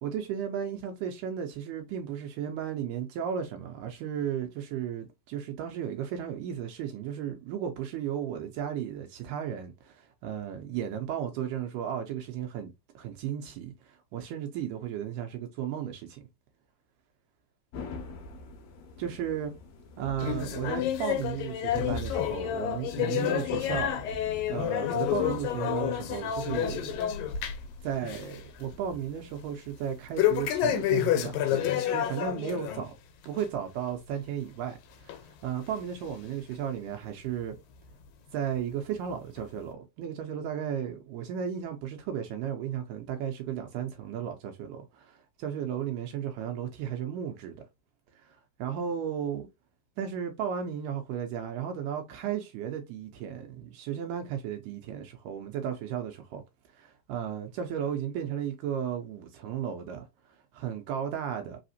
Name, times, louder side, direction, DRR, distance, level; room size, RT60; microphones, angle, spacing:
voice 1, 0.0-12.7 13.0-16.2 19.0-19.5 20.0-24.0 24.5-27.1 27.8-32.9 33.3-37.6 38.3-47.6 48.2-49.5 50.0-56.4 56.7-61.6, right 9 dB, 80° right, 2.1 m, -34 dB
sound 1, 17.7-31.5, left 2 dB, 65° left, 2.0 m, -46 dB
sound 2, 20.2-27.7 28.0-28.4 28.7-28.8 30.2-32.8 33.2-33.4 34.1-34.2 35.1-35.2 36.0-36.1, left 11 dB, 85° left, 2.4 m, -29 dB
4.9 x 3.4 x 2.6 m
omnidirectional pair, 3.9 m